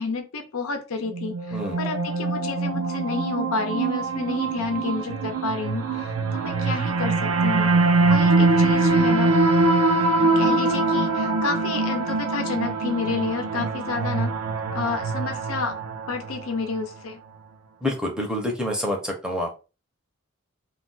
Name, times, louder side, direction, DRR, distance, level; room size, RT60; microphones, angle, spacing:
voice 1, 0.0-7.7 8.1-9.3 10.2-14.3 14.7-15.8 16.1-17.2, left 4 dB, 75° left, 5 dB, 0.6 m, -30 dB
sound 1, 1.1-16.4, right 3 dB, 90° right, 0.5 m, -23 dB
voice 2, 17.8-19.5, left 1 dB, 5° right, 0 dB, 0.6 m, -27 dB
2.3 x 2.2 x 3.9 m, 0.31 s
head